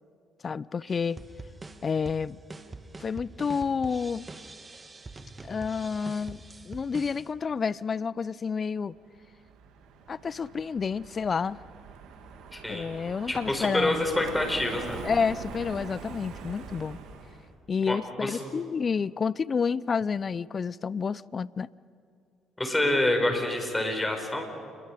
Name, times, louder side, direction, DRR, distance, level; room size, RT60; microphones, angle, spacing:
voice 1, 0.4-1.2 1.8-2.4 3.0-4.3 5.4-8.9 10.1-11.6 12.7-14.1 15.0-17.0 17.7-21.7, left 5 dB, 45° left, 21 dB, 0.5 m, -29 dB
sound 1, 0.9-7.3, right 3 dB, 25° right, 1.7 m, -44 dB
Car passing by, 9.0-17.5, right 6 dB, 70° right, 2.1 m, -43 dB
voice 2, 12.5-12.9 13.3-15.0 17.9-18.4 22.6-24.4, left 1 dB, 15° left, 3 dB, 5.7 m, -27 dB
28.5 x 22.5 x 5.0 m, 2.3 s
hypercardioid pair, 55°, 0 cm